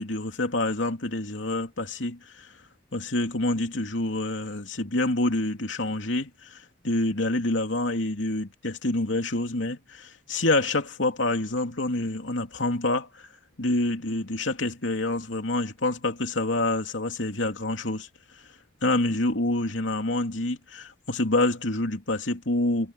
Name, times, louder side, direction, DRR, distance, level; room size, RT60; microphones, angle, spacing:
voice 1, 0.0-2.6 2.9-13.3 13.6-18.1 18.3-18.4 18.8-22.9, left 2 dB, 90° left, 2.9 m, -27 dB
head